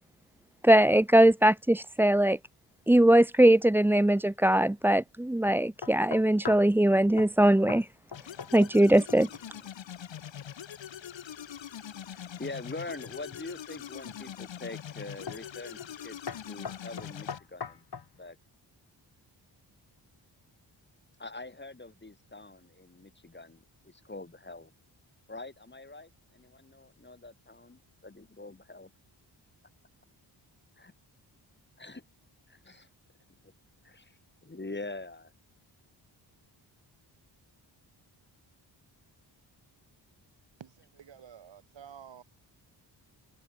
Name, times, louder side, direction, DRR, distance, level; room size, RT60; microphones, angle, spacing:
voice 1, 0.6-2.4 2.9-7.9 8.5-9.3, right 1 dB, 5° right, 0.6 m, -21 dB
sound 1, 5.8-6.7 7.2-7.4 7.7-8.8 9.1-9.5 12.8-13.5 14.1-14.5 15.3-15.5 15.8-16.0 16.3-18.1, left 6 dB, 55° left, 7.6 m, -41 dB
sound 2, 8.1-17.4, left 9 dB, 80° left, 2.5 m, -43 dB
voice 2, 12.1-16.2 16.5-17.9 18.1-18.4 21.2-24.7 25.3-28.9 30.8-30.9 31.8-32.0 32.5-32.9 33.4-33.5 33.8-35.3, left 2 dB, 25° left, 6.1 m, -44 dB
voice 3, 41.0-42.2, right 8 dB, 75° right, 3.7 m, -49 dB
cardioid pair, 70°, 45 cm